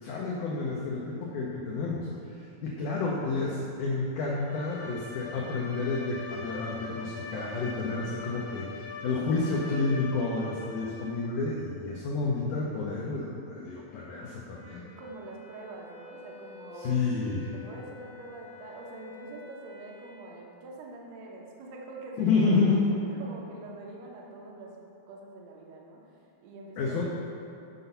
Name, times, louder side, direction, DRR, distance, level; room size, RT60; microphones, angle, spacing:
voice 1, 0.0-14.9 16.8-17.5 22.2-22.8 26.8-27.0, left 3 dB, 90° left, -3 dB, 1.7 m, -30 dB
Bowed string instrument, 4.2-11.3, left 4 dB, 65° left, 2.0 m, -43 dB
Wind instrument woodwind instrument, 14.5-20.2, left 6 dB, 50° left, 2.4 m, -50 dB
voice 2, 15.0-17.2 17.5-22.6 23.2-26.1 26.4-27.0, right 2 dB, 80° right, -2 dB, 1.5 m, -45 dB
7.9 x 4.0 x 5.5 m, 2.7 s
omnidirectional pair, 4.5 m